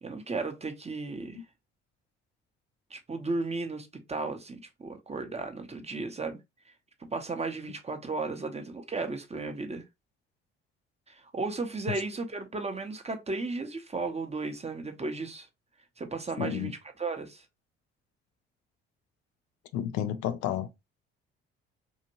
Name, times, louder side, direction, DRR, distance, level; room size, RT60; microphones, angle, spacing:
voice 1, 0.0-1.4 2.9-6.4 7.1-9.8 11.1-15.5 16.0-17.4, right 3 dB, 20° right, 0.8 m, -35 dB
voice 2, 16.4-16.7 19.7-20.7, left 10 dB, 65° left, 0.5 m, -31 dB
2.8 x 2.5 x 2.8 m
hypercardioid pair, 50°, 31 cm